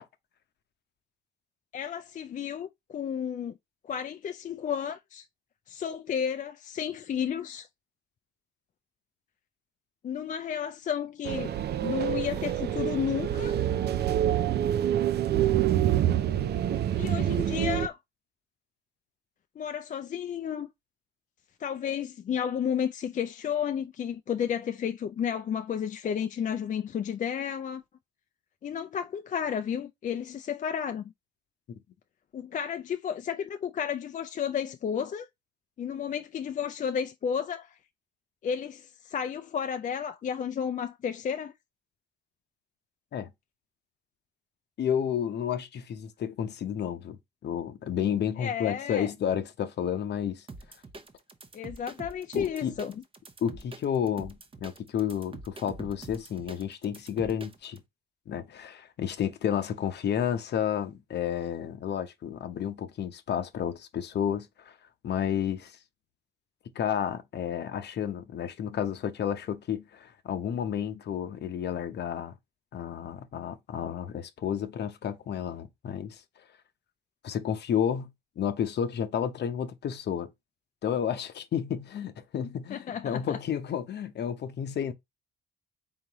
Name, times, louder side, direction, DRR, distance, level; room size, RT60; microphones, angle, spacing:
voice 1, 1.7-3.6 3.8-5.3 5.7-7.7 10.0-13.5 17.0-18.0 19.6-20.7 21.6-27.8 28.6-31.1 32.3-35.3 35.8-37.8 38.4-41.5 48.4-49.1 51.5-53.0 82.4-83.4, left 8 dB, 40° left, 0.4 m, -32 dB
sound 1, 11.2-17.9, right 11 dB, 55° right, 0.5 m, -26 dB
voice 2, 44.8-50.4 52.3-52.7 53.4-57.8 58.3-64.7 65.0-65.7 66.7-72.3 72.7-76.2 77.2-80.3 80.8-84.9, left 9 dB, 60° left, 0.8 m, -31 dB
sound 2, 50.5-57.8, right 3 dB, 25° right, 0.8 m, -45 dB
3.9 x 3.8 x 2.9 m
cardioid pair, 90°, 20 cm